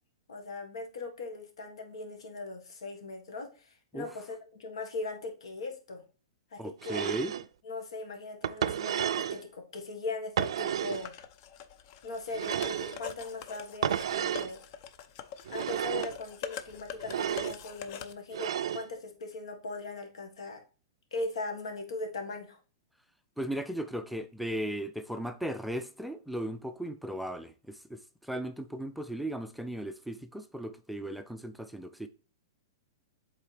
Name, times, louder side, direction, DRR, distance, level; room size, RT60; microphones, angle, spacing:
voice 1, 0.3-4.2 4.6-6.0 6.5-7.0 7.6-11.1 12.0-14.6 15.5-20.6 21.1-22.6, left 3 dB, 85° left, 1.7 m, -39 dB
voice 2, 6.6-7.3 23.4-32.1, right 1 dB, ahead, 0.3 m, -37 dB
sound 1, 6.8-7.5 8.4-9.4 10.4-11.1 12.3-13.0 13.8-14.5 15.5-16.2 17.0-17.6 18.3-18.9, right 9 dB, 75° right, 0.4 m, -32 dB
sound 2, 10.9-18.1, left 8 dB, 45° left, 0.6 m, -44 dB
7.4 x 4.0 x 3.4 m
hypercardioid pair, 145°, 3 cm